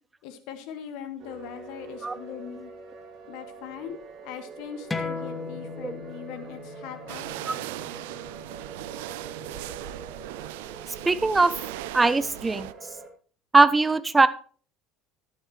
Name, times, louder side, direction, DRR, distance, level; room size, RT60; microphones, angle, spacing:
voice 1, 0.2-2.7 3.3-7.6, left 8 dB, 60° left, 9 dB, 1.7 m, -41 dB
sound 1, 1.2-13.1, right 3 dB, 55° right, 2.3 m, -45 dB
sound 2, 4.9-10.1, left 4 dB, 15° left, 1.5 m, -38 dB
sound 3, 7.1-12.7, right 16 dB, 70° right, 0.4 m, -38 dB
voice 2, 11.1-11.5 11.9-12.7 13.5-14.3, right 3 dB, 20° right, 14 dB, 0.8 m, -20 dB
14.0 x 11.0 x 3.1 m, 0.42 s
figure-of-eight pair, 65°, 0 cm